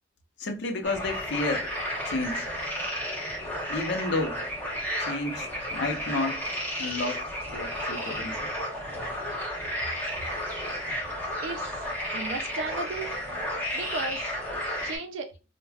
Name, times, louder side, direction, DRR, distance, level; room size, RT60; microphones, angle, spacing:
voice 1, 0.4-1.7 2.1-2.4 3.7-4.4 5.0-6.5 6.8-8.5, left 2 dB, 65° left, 0.6 m, -31 dB
sound 1, 0.8-15.0, equal, 10° left, 1.0 m, -32 dB
voice 2, 11.4-11.8 12.1-13.1 13.7-14.3 14.8-15.3, right 3 dB, 75° right, 0.4 m, -35 dB
3.3 x 2.1 x 2.3 m
head